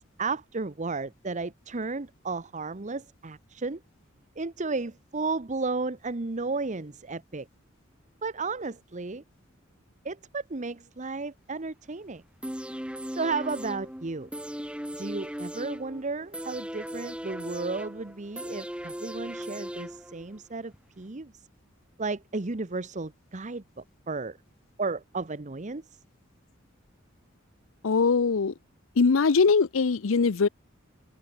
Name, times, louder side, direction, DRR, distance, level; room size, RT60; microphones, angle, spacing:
voice 1, 0.0-3.8 4.4-7.5 8.2-9.2 10.0-12.2 13.1-14.3 15.0-21.4 22.0-24.4 24.8-26.0, right 3 dB, 35° right, 0.9 m, -33 dB
sound 1, 12.4-20.4 20.7-20.8, equal, 5° right, 3.8 m, -38 dB
voice 2, 27.8-28.5 29.0-30.5, left 4 dB, 80° left, 0.6 m, -22 dB
head